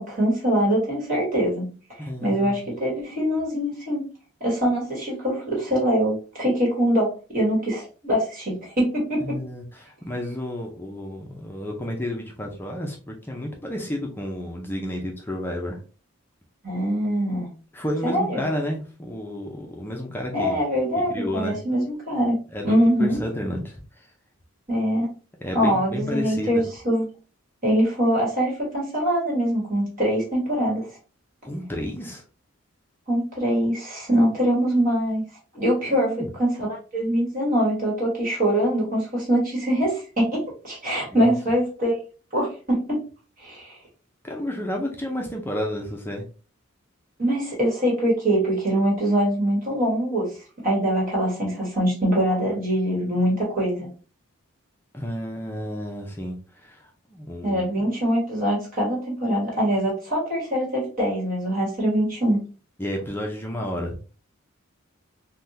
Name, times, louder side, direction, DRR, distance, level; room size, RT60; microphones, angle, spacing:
voice 1, 0.0-4.0 4.4-9.4 16.6-17.5 18.0-18.5 20.3-22.4 22.6-23.2 24.7-25.1 25.5-27.0 27.6-31.0 33.1-35.2 35.5-42.0 42.3-43.0 43.4-43.8 47.2-50.4 50.6-53.9 57.4-62.4, equal, 40° right, -4 dB, 1.3 m, -23 dB
voice 2, 2.0-2.7 9.2-15.8 17.7-20.6 21.1-21.6 22.5-23.8 25.4-26.6 31.4-32.2 35.9-36.3 41.1-41.3 44.2-46.2 54.9-57.9 62.8-64.0, left 1 dB, 10° left, 0 dB, 0.5 m, -31 dB
3.4 x 2.2 x 2.7 m, 0.36 s
head